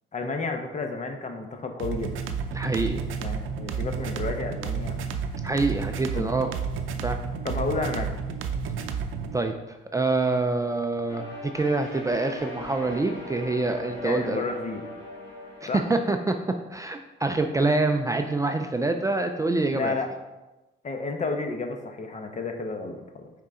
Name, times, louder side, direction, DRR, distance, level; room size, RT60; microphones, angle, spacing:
voice 1, 0.1-2.2 3.2-5.0 6.1-6.3 7.4-8.2 14.0-14.8 15.7-15.8 19.7-20.1 20.8-23.3, left 3 dB, 35° left, 5 dB, 0.9 m, -31 dB
sound 1, 1.8-9.4, right 6 dB, 80° right, 0.6 m, -31 dB
voice 2, 2.5-3.0 5.4-6.5 7.0-7.2 9.3-14.4 15.6-16.4 16.7-19.9, right 3 dB, 15° right, 5 dB, 0.4 m, -26 dB
sound 2, 11.1-16.2, left 1 dB, 80° left, 2.2 m, -40 dB
5.9 x 3.8 x 4.3 m, 1.1 s
cardioid pair, 90°, 20 cm